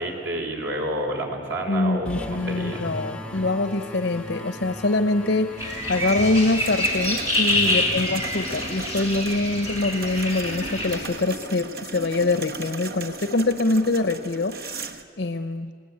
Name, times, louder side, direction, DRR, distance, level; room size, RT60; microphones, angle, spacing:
voice 1, 0.0-2.8 7.5-8.0, right 1 dB, 85° right, 1 dB, 4.7 m, -30 dB
voice 2, 1.7-14.6 15.2-15.7, left 2 dB, 75° left, 9 dB, 0.9 m, -24 dB
sound 1, 2.1-7.4, left 1 dB, 5° left, 0.8 m, -37 dB
sound 2, 5.6-11.0, left 1 dB, 15° right, 6.4 m, -26 dB
sound 3, 6.0-15.0, right 3 dB, 55° right, 1.3 m, -37 dB
28.0 x 19.0 x 8.7 m, 2.1 s
head